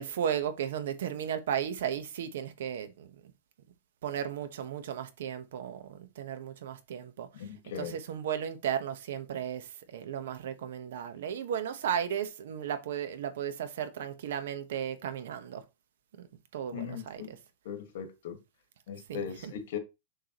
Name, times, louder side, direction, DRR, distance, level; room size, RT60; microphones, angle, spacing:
voice 1, 0.0-3.3 4.0-7.3 7.8-15.6 16.2-16.3 16.5-17.4 19.1-19.5, right 9 dB, 70° right, 1.2 m, -35 dB
voice 2, 7.3-8.0 16.7-17.4 17.6-18.4 18.9-19.8, left 8 dB, 60° left, 1.8 m, -39 dB
6.7 x 6.1 x 3.1 m
supercardioid pair, 160°, 0 cm